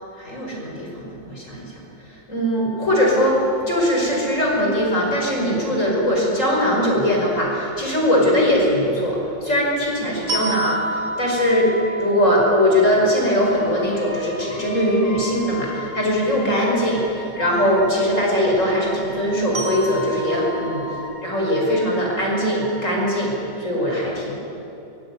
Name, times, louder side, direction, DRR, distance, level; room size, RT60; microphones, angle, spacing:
voice 1, 0.2-3.4 3.7-20.9 21.2-24.4, equal, 40° left, -2 dB, 5.8 m, -21 dB
sound 1, 2.5-21.0, right 1 dB, 50° right, 4.5 m, -35 dB
Wind instrument woodwind instrument, 13.5-23.4, left 1 dB, 75° left, 5.2 m, -38 dB
23.5 x 21.5 x 9.4 m, 2.9 s
omnidirectional pair, 1.9 m